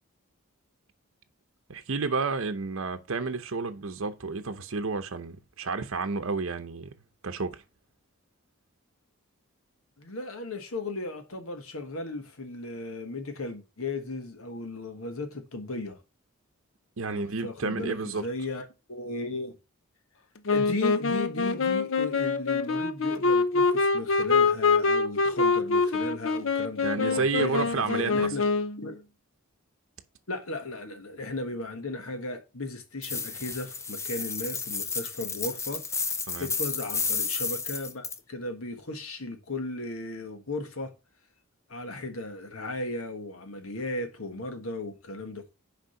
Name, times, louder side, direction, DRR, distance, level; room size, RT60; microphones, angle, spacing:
voice 1, 1.7-6.9 7.2-7.6 17.0-18.3 26.8-28.3 36.3-36.5, right 4 dB, 70° right, 0.8 m, -30 dB
voice 2, 10.0-16.0 17.1-19.5 20.5-28.5 28.8-29.0 30.3-40.9 41.7-45.5, left 2 dB, 80° left, 1.4 m, -36 dB
Wind instrument woodwind instrument, 20.5-28.9, left 4 dB, 65° left, 0.7 m, -25 dB
sound 1, 33.0-38.2, left 5 dB, 15° left, 0.4 m, -32 dB
6.5 x 5.1 x 5.7 m
head